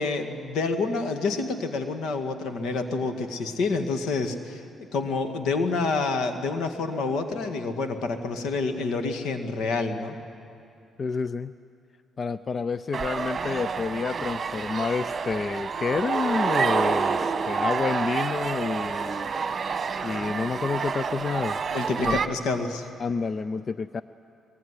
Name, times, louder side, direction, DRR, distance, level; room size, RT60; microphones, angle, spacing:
voice 1, 0.0-4.6 4.9-10.2 21.7-22.9, left 3 dB, 80° left, 6 dB, 2.0 m, -28 dB
voice 2, 11.0-11.5 12.2-19.3 20.0-21.6 22.1-22.2 23.0-24.0, left 5 dB, 40° left, 14 dB, 0.5 m, -29 dB
sound 1, 12.9-22.3, right 5 dB, 40° right, 1.4 m, -28 dB
22.5 x 22.0 x 9.9 m, 2.6 s
cardioid pair, 90°, 0 cm